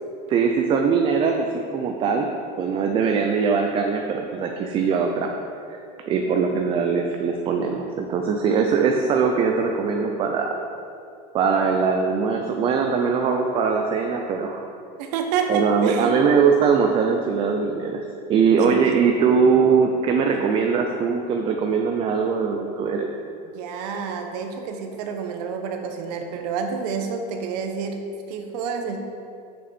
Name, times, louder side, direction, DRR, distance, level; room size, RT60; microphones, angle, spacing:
voice 1, 0.3-1.5 1.7-2.3 2.6-5.3 5.7-5.8 6.0-10.5 11.3-14.7 15.5-18.0 18.3-23.1, right 5 dB, 25° right, 3 dB, 0.4 m, -21 dB
voice 2, 15.0-16.2 18.6-18.9 20.3-20.6 23.5-28.0 28.3-29.0, right 6 dB, 75° right, 5 dB, 0.9 m, -28 dB
6.8 x 6.1 x 4.3 m, 2.5 s
supercardioid pair, 155°, 21 cm